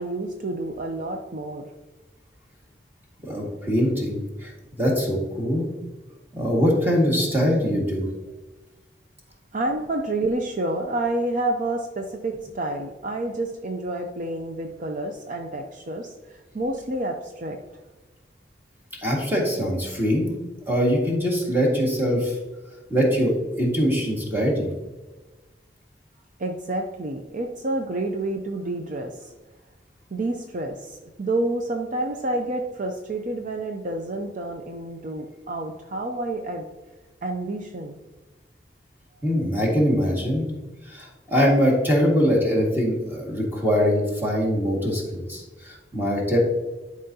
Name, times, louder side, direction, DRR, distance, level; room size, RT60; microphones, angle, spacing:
voice 1, 0.0-1.7 9.5-17.6 26.4-29.3 30.1-36.7 37.2-38.0, right 2 dB, 50° right, 4 dB, 0.6 m, -29 dB
voice 2, 3.2-4.5 4.8-5.7 6.3-8.1 19.0-20.3 20.7-22.4 22.9-24.7 39.2-40.5 40.9-46.4, equal, 10° right, -2 dB, 1.8 m, -22 dB
11.0 x 4.9 x 2.8 m, 1.2 s
head